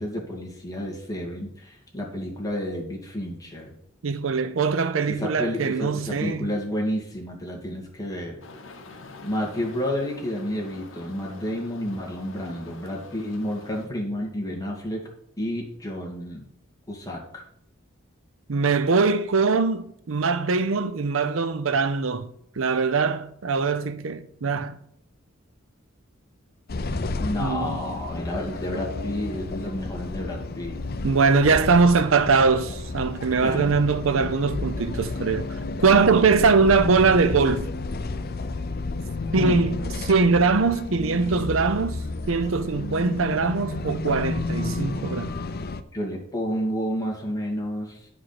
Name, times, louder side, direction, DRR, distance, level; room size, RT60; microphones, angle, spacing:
voice 1, 0.0-3.7 5.1-8.4 9.2-15.1 15.4-16.4 16.9-17.4 27.2-30.8 33.4-33.8 39.3-39.6 45.9-48.1, equal, 15° left, 2.2 m, -30 dB
voice 2, 4.0-6.5 18.5-22.3 22.6-24.8 27.4-27.8 31.0-35.5 35.8-37.7 39.3-45.3, right 4 dB, 75° right, 0.6 m, -22 dB
sound 1, 8.4-13.9, left 3 dB, 75° left, 1.2 m, -45 dB
sound 2, 26.7-45.8, left 3 dB, 50° left, 0.6 m, -31 dB
10.0 x 4.9 x 5.9 m
head